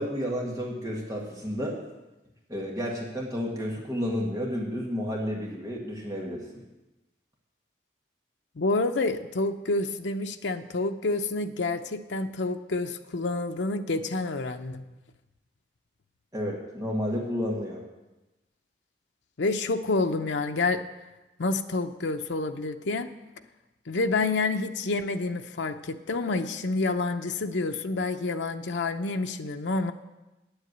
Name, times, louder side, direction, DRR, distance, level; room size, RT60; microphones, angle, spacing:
voice 1, 0.0-1.8 2.5-6.6 16.3-17.8, equal, 20° right, -2 dB, 1.6 m, -31 dB
voice 2, 8.6-14.8 19.4-20.8 21.4-23.1 23.9-29.9, left 3 dB, 90° left, 6 dB, 0.7 m, -28 dB
9.1 x 8.0 x 7.9 m, 1.0 s
head